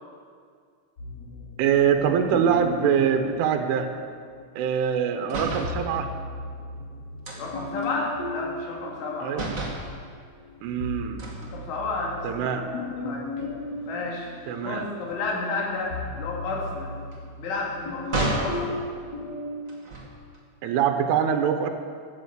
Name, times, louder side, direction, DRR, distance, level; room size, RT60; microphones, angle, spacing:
sound 1, 1.0-4.5 5.4-9.9 10.3-19.6, left 2 dB, 25° left, 3.4 m, -37 dB
voice 1, 1.6-3.9 4.6-6.1 9.2-9.5 10.6-11.2 12.2-12.7 14.5-14.9 20.6-21.7, right 8 dB, 90° right, 6 dB, 3.6 m, -24 dB
sound 2, 5.2-5.8 7.2-9.1 9.3-9.9 11.2-12.2 12.7-12.9 13.2-18.6 19.6-20.4, right 2 dB, 50° right, 0.9 m, -34 dB
voice 2, 7.4-9.5 11.4-13.3 13.9-14.3 14.6-16.9 17.4-18.7, left 3 dB, 85° left, -2 dB, 4.9 m, -32 dB
14.5 x 9.9 x 8.1 m, 2.1 s
omnidirectional pair, 5.4 m